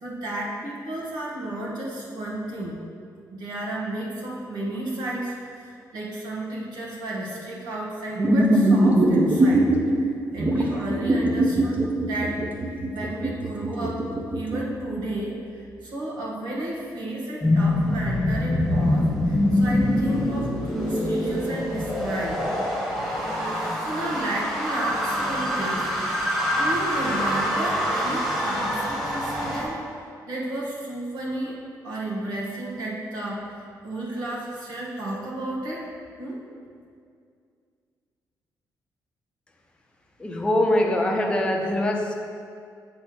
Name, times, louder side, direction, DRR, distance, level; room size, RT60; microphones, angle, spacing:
voice 1, 0.0-2.8 3.3-12.4 12.9-14.0 14.3-22.4 23.4-25.9 26.5-29.9 30.3-33.5 33.8-35.9 36.2-36.4, right 1 dB, 80° right, -4 dB, 1.6 m, -32 dB
sound 1, 8.2-9.8 10.4-14.6, right 1 dB, 20° right, 0.7 m, -20 dB
sound 2, 17.4-29.6, left 1 dB, 5° right, 1.3 m, -25 dB
voice 2, 40.2-42.1, left 1 dB, 15° left, 1 dB, 0.7 m, -23 dB
7.9 x 3.3 x 6.1 m, 2.3 s
cardioid pair, 155°, 7 cm